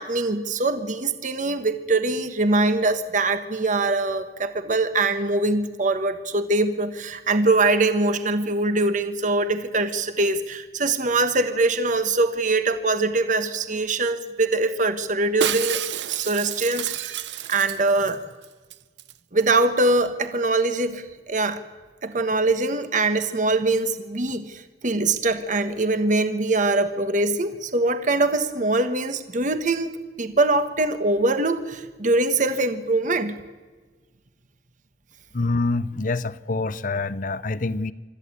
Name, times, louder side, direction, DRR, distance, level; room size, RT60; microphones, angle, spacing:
voice 1, 0.0-17.2 17.5-18.2 19.3-21.6 22.0-33.4, right 2 dB, 45° right, 9 dB, 1.3 m, -23 dB
Shatter, 15.4-18.1 18.4-18.5 18.7-19.1 19.4-19.5, right 10 dB, 85° right, 0.7 m, -30 dB
voice 2, 35.3-37.9, left 3 dB, 50° left, 16 dB, 0.7 m, -26 dB
26.0 x 13.5 x 8.4 m, 1.3 s
head